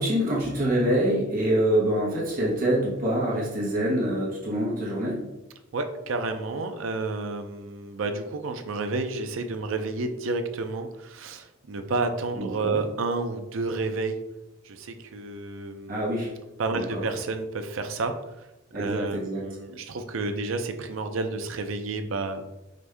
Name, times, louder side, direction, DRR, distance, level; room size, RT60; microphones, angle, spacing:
voice 1, 0.0-5.2 12.4-12.8 15.9-16.3 16.7-16.8 18.7-19.4, right 1 dB, 45° right, -5 dB, 1.1 m, -25 dB
voice 2, 5.7-14.2 14.6-16.1 16.6-18.5 18.7-22.4, right 3 dB, 75° right, 7 dB, 0.5 m, -30 dB
5.0 x 2.6 x 3.3 m, 0.97 s
head